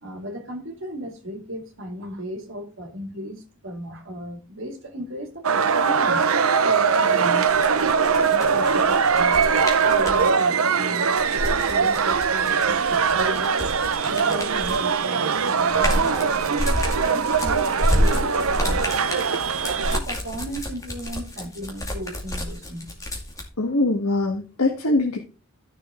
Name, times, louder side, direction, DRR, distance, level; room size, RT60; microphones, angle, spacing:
voice 1, 0.0-6.3 6.6-7.5 7.8-9.4 9.8-11.1 11.5-13.6 14.0-19.3 19.9-22.9, equal, 60° right, 2.7 m, -36 dB
sound 1, 5.4-20.0, right 5 dB, 75° right, 0.7 m, -21 dB
sound 2, 7.5-10.2 11.2-14.9 15.4-23.4, equal, 15° left, 2.2 m, -28 dB
voice 2, 23.6-25.2, left 2 dB, 90° left, 1.6 m, -22 dB
13.5 x 6.6 x 3.8 m
head